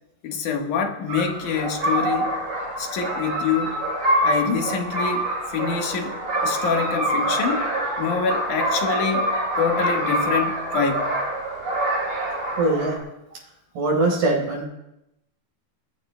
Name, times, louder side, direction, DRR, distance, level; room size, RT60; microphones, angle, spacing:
voice 1, 0.2-2.3 2.8-3.8 4.2-5.2 5.5-7.7 8.0-9.3 9.6-11.2, left 6 dB, 60° left, 3 dB, 2.6 m, -25 dB
sound 1, 1.1-13.0, right 1 dB, 45° right, 5.8 m, -25 dB
voice 2, 12.6-13.0 13.7-14.7, right 2 dB, 70° right, -3 dB, 6.3 m, -21 dB
22.0 x 19.5 x 2.3 m, 0.88 s
omnidirectional pair, 4.4 m